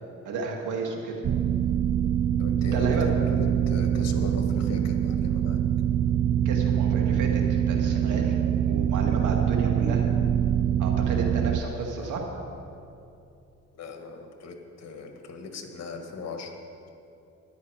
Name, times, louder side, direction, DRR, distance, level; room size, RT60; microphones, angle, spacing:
voice 1, 0.2-1.2 2.6-3.1 6.4-8.3 8.7-10.1 10.8-12.2, right 3 dB, 80° right, 1 dB, 2.1 m, -32 dB
sound 1, 1.2-11.6, right 9 dB, 35° right, 0.5 m, -24 dB
voice 2, 2.4-5.6 11.8-12.2 13.7-16.5, left 4 dB, 60° left, 4 dB, 1.6 m, -39 dB
13.5 x 11.0 x 4.8 m, 2.6 s
cardioid pair, 90°, 30 cm